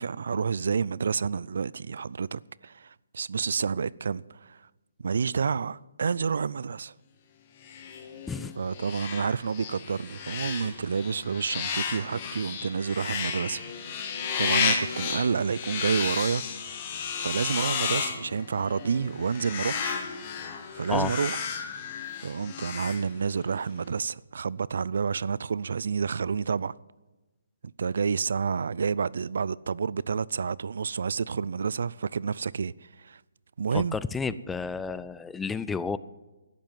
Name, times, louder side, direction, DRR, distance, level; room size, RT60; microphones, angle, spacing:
voice 1, 0.0-4.7 5.0-6.9 8.6-14.1 14.4-16.4 17.2-20.0 20.7-21.4 22.2-26.7 27.8-33.2 33.6-34.0, right 6 dB, 65° right, 0.4 m, -29 dB
sound 1, 7.6-23.6, left 6 dB, 35° left, 2.0 m, -33 dB
voice 2, 33.7-36.0, left 5 dB, 10° left, 0.4 m, -31 dB
12.0 x 10.5 x 9.2 m
figure-of-eight pair, 145°, 0 cm